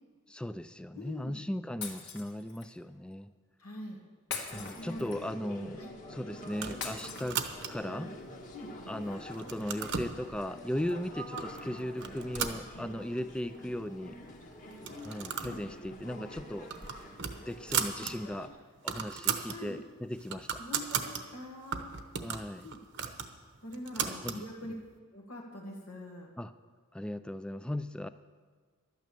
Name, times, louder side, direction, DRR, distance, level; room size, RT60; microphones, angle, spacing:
voice 1, 0.3-3.3 4.5-5.8 6.1-7.4 7.7-8.1 8.9-14.2 15.0-16.9 17.4-18.5 18.8-20.6 22.2-22.7 23.9-24.5 26.4-26.5 26.9-28.1, left 1 dB, 5° left, 12 dB, 0.3 m, -37 dB
voice 2, 0.9-1.4 3.6-4.0 4.7-5.1 5.8-5.9 8.5-8.7 15.4-15.6 18.0-18.1 19.5-19.8 20.6-21.9 22.6-22.8 23.6-24.7 25.1-26.3, left 1 dB, 80° left, -3 dB, 1.9 m, -44 dB
Shatter, 1.8-2.7 4.3-5.4 6.8-7.8, left 5 dB, 55° left, 1.7 m, -41 dB
sound 1, 4.5-18.5, equal, 35° left, 1.6 m, -46 dB
sound 2, 6.5-8.0 8.5-9.0 9.3-10.2 10.9-11.0 11.4-11.6 12.0-13.2 13.6-13.7 13.9-14.0 14.7-15.6 15.9-16.1 16.5-18.1 18.5-18.6 18.8-19.6 20.0-21.2 21.7-24.4, right 7 dB, 55° right, 0.9 m, -36 dB
12.0 x 9.2 x 6.8 m, 1.5 s
head